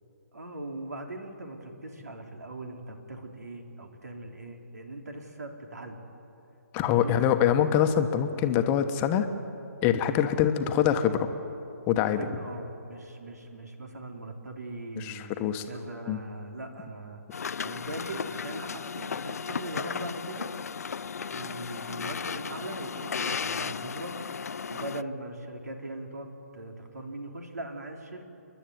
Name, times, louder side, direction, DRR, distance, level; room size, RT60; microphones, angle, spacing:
voice 1, 0.3-6.0 6.7-7.2 12.1-17.2 17.6-20.5 21.2-24.1 24.7-26.3 26.5-28.3, right 2 dB, 75° right, 4 dB, 3.3 m, -40 dB
voice 2, 6.7-9.3 9.8-11.3 11.9-12.2 15.0-15.6 16.1-16.2, left 9 dB, 20° left, 8 dB, 1.2 m, -24 dB
sound 1, 17.3-25.0, left 6 dB, 65° left, 0.5 m, -35 dB
30.0 x 11.5 x 9.4 m, 2.9 s
figure-of-eight pair, 140°, 9 cm